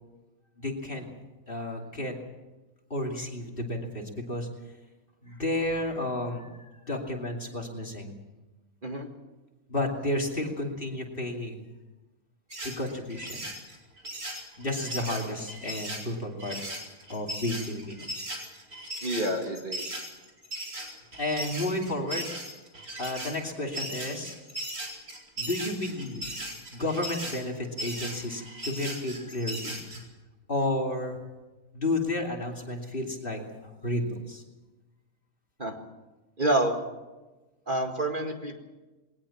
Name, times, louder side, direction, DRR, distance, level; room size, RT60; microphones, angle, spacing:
voice 1, 0.6-1.1 1.5-2.1 2.9-4.5 5.2-6.6 6.9-8.2 9.7-11.6 12.6-13.5 14.6-16.6 17.1-18.1 21.2-22.3 23.0-24.3 25.4-26.4 26.7-29.8 30.5-31.2 31.7-34.4, left 1 dB, 35° left, 1 dB, 3.0 m, -32 dB
sound 1, 12.5-30.0, right 1 dB, 80° right, 5.0 m, -38 dB
voice 2, 19.0-20.0 35.6-35.8 36.4-36.7 37.7-38.6, right 1 dB, 35° right, 3 dB, 2.1 m, -28 dB
21.0 x 19.0 x 7.2 m, 1.1 s
omnidirectional pair, 1.6 m